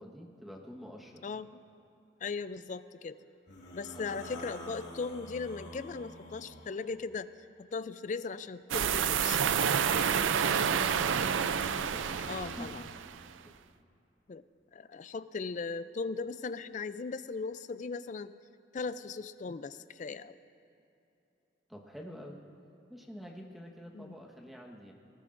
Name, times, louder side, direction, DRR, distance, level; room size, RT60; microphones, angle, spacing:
voice 1, 0.0-1.3 3.9-4.2 10.8-11.5 11.9-12.7 13.5-13.6 21.7-22.4 22.9-24.9, equal, ahead, -1 dB, 1.3 m, -47 dB
voice 2, 2.2-3.2 3.7-7.3 7.7-9.4 12.3-12.8 14.3-14.4 14.7-18.3 18.7-20.4 23.9-24.2, left 4 dB, 40° left, 14 dB, 0.4 m, -38 dB
sound 1, 3.5-6.9 8.9-12.8, left 2 dB, 80° left, 2.2 m, -45 dB
sound 2, 8.7-13.2, right 8 dB, 90° right, 0.4 m, -29 dB
20.5 x 20.0 x 2.6 m, 2.8 s
head